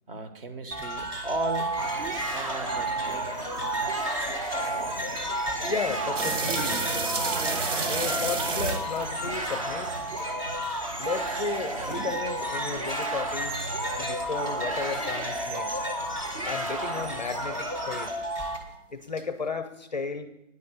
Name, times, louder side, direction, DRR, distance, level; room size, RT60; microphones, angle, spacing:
voice 1, 0.1-1.7 2.3-3.3, right 2 dB, 45° right, 9 dB, 1.2 m, -35 dB
sound 1, 0.7-18.6, right 1 dB, 10° right, 0.9 m, -34 dB
sound 2, 1.8-18.1, right 1 dB, 30° right, 0.5 m, -34 dB
voice 2, 5.7-6.8 7.9-9.9 11.0-13.6 14.0-15.8 16.4-18.1 18.9-20.3, left 4 dB, 35° left, 11 dB, 0.5 m, -34 dB
sound 3, 6.2-10.2 10.6-10.7 11.3-12.5 13.0-13.1 13.6-13.7 14.2-14.3 14.8-14.9 15.4-15.5 16.0-16.1 16.7-16.8 17.3-17.4 17.9-18.0 18.5-18.6 19.2-19.3, right 4 dB, 70° right, 1.1 m, -31 dB
9.5 x 5.2 x 7.9 m, 0.86 s
hypercardioid pair, 155°, 39 cm